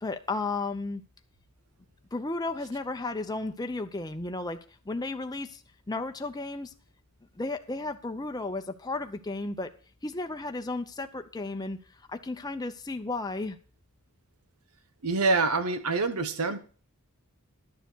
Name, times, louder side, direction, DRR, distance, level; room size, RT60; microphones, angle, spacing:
voice 1, 0.0-1.0 2.1-4.6 4.9-5.6 5.9-6.7 7.4-9.7 10.0-11.8 12.1-13.6, left 2 dB, 15° left, 6 dB, 0.6 m, -33 dB
voice 2, 15.0-16.6, right 3 dB, 85° right, 11 dB, 1.0 m, -26 dB
11.5 x 6.9 x 6.1 m, 0.40 s
head